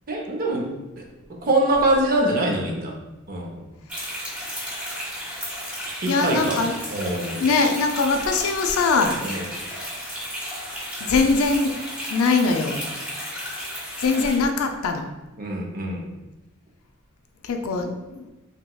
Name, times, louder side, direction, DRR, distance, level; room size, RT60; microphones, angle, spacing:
voice 1, 0.1-1.0 1.3-2.9 3.3-3.6 5.8-6.6 6.9-7.4 9.2-9.5 15.4-16.1, right 1 dB, 40° right, 0 dB, 0.5 m, -24 dB
sound 1, 3.9-14.4, equal, 5° right, 0.8 m, -33 dB
voice 2, 6.1-6.8 7.4-9.2 11.0-12.8 14.0-15.1 17.4-18.3, left 4 dB, 75° left, 5 dB, 0.4 m, -22 dB
3.4 x 2.9 x 2.2 m, 1.1 s
head